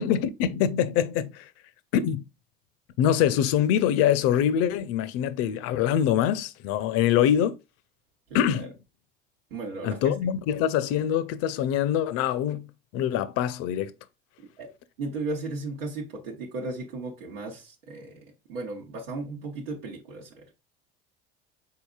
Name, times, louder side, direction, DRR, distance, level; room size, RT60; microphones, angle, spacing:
voice 1, 0.0-1.4 1.9-2.2 3.0-7.6 8.3-8.7 9.8-12.7 12.9-13.9, left 9 dB, 55° left, 0.6 m, -24 dB
voice 2, 8.3-8.7 9.5-10.2 14.4-14.7 15.0-20.4, right 3 dB, 80° right, 1.0 m, -36 dB
5.6 x 4.0 x 2.3 m
hypercardioid pair, 70°, 29 cm